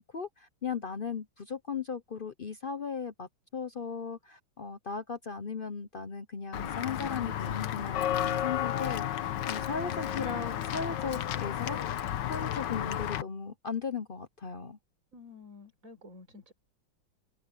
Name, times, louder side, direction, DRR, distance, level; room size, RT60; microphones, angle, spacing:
voice 1, 0.0-11.8 12.3-14.8, left 5 dB, 55° left, 0.6 m, -37 dB
Walk footsteps / Bell, 6.5-13.2, left 11 dB, 70° left, 1.6 m, -32 dB
voice 2, 15.1-16.5, left 3 dB, 45° right, 5.7 m, -50 dB
omnidirectional pair, 2.0 m